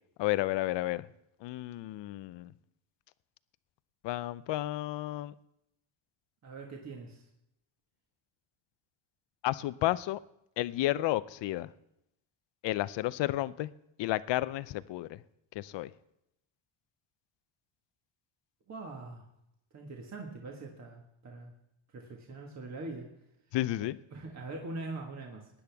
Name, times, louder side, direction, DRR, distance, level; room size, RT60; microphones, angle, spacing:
voice 1, 0.2-1.0 1.4-2.5 4.0-5.3 9.4-10.2 10.6-11.7 12.6-13.7 14.0-15.2 15.6-15.9 23.5-24.0, left 16 dB, 60° left, 17 dB, 0.6 m, -32 dB
voice 2, 6.4-7.3 18.7-19.3 19.7-21.5 21.9-23.1 23.8-25.5, right 3 dB, 35° right, 1 dB, 1.6 m, -43 dB
18.5 x 10.0 x 3.5 m, 0.80 s
cardioid pair, 140°, 49 cm